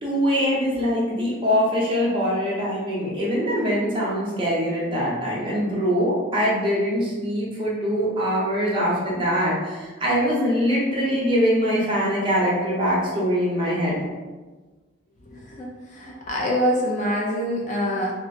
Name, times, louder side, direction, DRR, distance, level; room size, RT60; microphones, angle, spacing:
voice 1, 0.0-14.0, equal, 25° right, -5 dB, 0.8 m, -23 dB
voice 2, 15.3-18.1, equal, 40° left, -3 dB, 0.5 m, -25 dB
2.9 x 2.1 x 4.1 m, 1.3 s
head